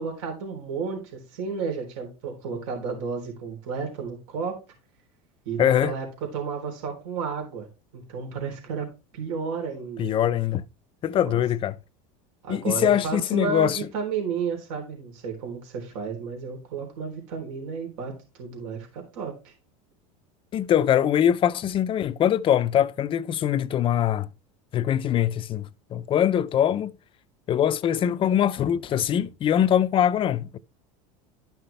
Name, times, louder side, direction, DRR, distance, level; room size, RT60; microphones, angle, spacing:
voice 1, 0.0-4.6 5.5-6.1 6.3-7.7 7.9-8.9 9.1-10.1 11.2-11.4 12.4-18.1 18.4-19.5, right 5 dB, 75° right, 3.7 m, -32 dB
voice 2, 5.6-5.9 10.0-10.6 11.0-11.8 12.5-13.8 20.5-24.3 24.7-26.9 27.5-30.6, left 10 dB, 30° left, 0.6 m, -23 dB
12.0 x 5.8 x 3.3 m
supercardioid pair, 130°, 17 cm